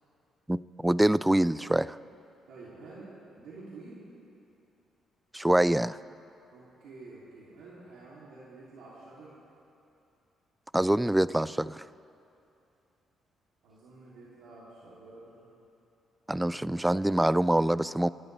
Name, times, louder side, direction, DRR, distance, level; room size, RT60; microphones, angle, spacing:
voice 1, 0.5-2.0 5.3-6.0 10.7-11.8 16.3-18.1, right 1 dB, 10° right, 18 dB, 0.3 m, -25 dB
voice 2, 2.5-3.1 3.4-4.0 6.5-9.3 13.6-15.6, right 3 dB, 85° right, -8 dB, 2.9 m, -49 dB
26.0 x 13.0 x 3.4 m, 2.7 s
cardioid pair, 90°, 0 cm